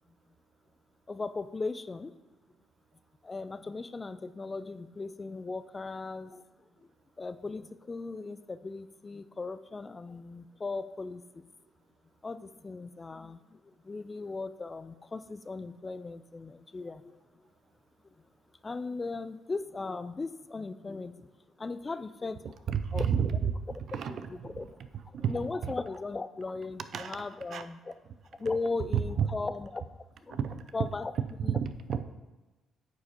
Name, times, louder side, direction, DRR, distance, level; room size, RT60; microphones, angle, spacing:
voice 1, 1.1-2.1 3.2-6.4 7.2-11.4 12.2-13.6 13.8-17.2 18.6-21.3 21.6-22.5 22.9-23.1 24.1-24.7 25.3-27.9 28.4-29.8 30.3-30.4 30.7-31.1 31.4-31.6, left 3 dB, 25° left, 13 dB, 0.4 m, -37 dB
voice 2, 22.7-23.5 23.9-24.6 25.1-25.7 26.9-27.2 27.5-27.7 28.9-29.3 30.3-30.6 31.6-32.0, right 7 dB, 65° right, 11 dB, 0.5 m, -31 dB
9.4 x 4.9 x 4.3 m, 1.2 s
cardioid pair, 90°, 0 cm